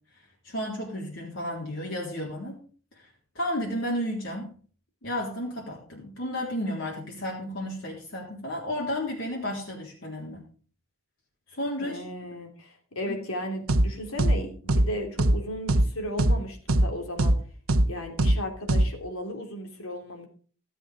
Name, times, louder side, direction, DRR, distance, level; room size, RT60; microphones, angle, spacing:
voice 1, 0.1-2.6 3.0-3.1 3.4-4.5 5.0-10.4 11.5-12.0 13.0-13.2, left 1 dB, 60° left, -3 dB, 3.7 m, -32 dB
voice 2, 11.8-17.4 17.8-20.3, equal, 75° left, 3 dB, 3.3 m, -35 dB
sound 1, 13.7-13.9 14.2-14.4 14.7-14.9 15.2-15.4 15.7-15.9 16.2-16.4 16.7-16.9 17.2-17.4 17.7-17.9 18.2-18.4 18.7-18.9, right 1 dB, 85° right, 1.0 m, -20 dB
16.5 x 8.1 x 5.0 m, 0.42 s
head